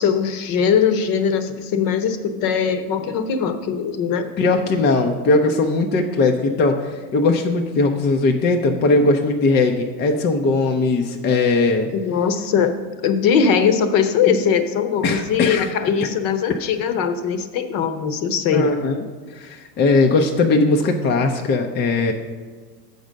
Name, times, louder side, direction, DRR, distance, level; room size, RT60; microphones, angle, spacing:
voice 1, 0.0-4.3 11.9-12.7 13.0-18.7, left 7 dB, 45° left, 9 dB, 0.9 m, -20 dB
voice 2, 4.4-11.9 14.3-14.4 15.0-15.7 18.5-19.0 19.3-22.1, left 3 dB, 25° left, 3 dB, 0.5 m, -19 dB
7.1 x 5.3 x 6.3 m, 1.5 s
hypercardioid pair, 105°, 48 cm